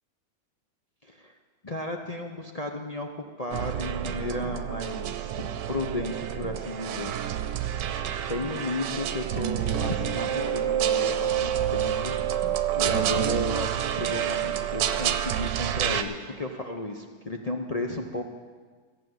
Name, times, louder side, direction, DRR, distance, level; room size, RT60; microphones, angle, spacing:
voice 1, 1.0-1.3 1.6-7.1 7.8-8.0 8.3-18.3, left 2 dB, 45° left, 1 dB, 0.4 m, -34 dB
sound 1, 3.5-16.0, right 10 dB, 80° right, 1.3 m, -28 dB
15.0 x 8.2 x 7.8 m, 1.5 s
omnidirectional pair, 1.9 m